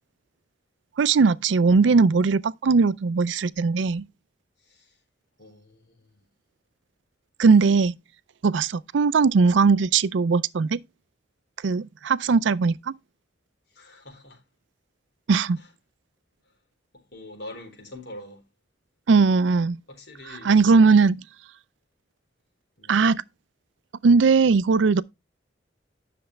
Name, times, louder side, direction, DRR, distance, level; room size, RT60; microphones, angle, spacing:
voice 1, 1.0-4.0 7.4-7.9 8.4-10.8 11.6-12.9 15.3-15.6 19.1-19.8 20.4-21.2 22.9-23.2 24.0-25.0, right 4 dB, 80° right, 0.4 m, -19 dB
voice 2, 4.6-5.0 5.4-6.3 13.7-14.4 15.6-15.7 17.1-18.4 19.9-20.6 22.8-23.0, left 1 dB, 60° left, 4.2 m, -44 dB
10.0 x 6.7 x 3.2 m
head